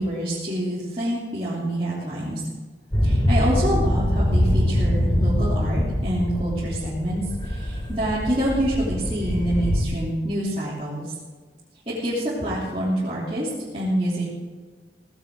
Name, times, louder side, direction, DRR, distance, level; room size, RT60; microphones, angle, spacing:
voice 1, 0.0-2.5 3.0-11.1 11.9-14.3, right 1 dB, 35° right, -10 dB, 3.3 m, -26 dB
sound 1, 2.9-9.8, equal, 25° left, 2.4 m, -23 dB
17.0 x 16.5 x 3.9 m, 1.4 s
head